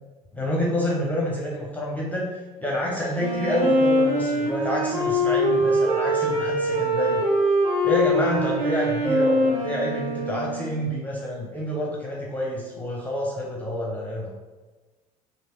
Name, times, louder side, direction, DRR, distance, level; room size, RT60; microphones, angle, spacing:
voice 1, 0.3-2.3 2.6-7.2 7.8-14.3, equal, 10° left, -3 dB, 0.7 m, -28 dB
Wind instrument woodwind instrument, 3.1-10.8, equal, 30° right, 1.5 m, -23 dB
3.2 x 2.7 x 3.0 m, 1.2 s
figure-of-eight pair, 65°, 19 cm